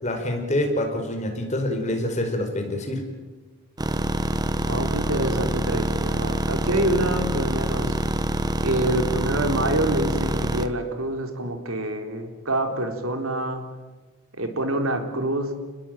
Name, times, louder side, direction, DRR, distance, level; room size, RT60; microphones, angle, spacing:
voice 1, 0.0-3.0, left 1 dB, 30° left, 4 dB, 4.9 m, -26 dB
sound 1, 3.8-10.7, right 1 dB, 20° right, 1.1 m, -25 dB
voice 2, 4.6-8.0 8.3-13.6 14.3-15.6, right 1 dB, 70° right, 5 dB, 4.1 m, -26 dB
30.0 x 20.5 x 9.3 m, 1.3 s
head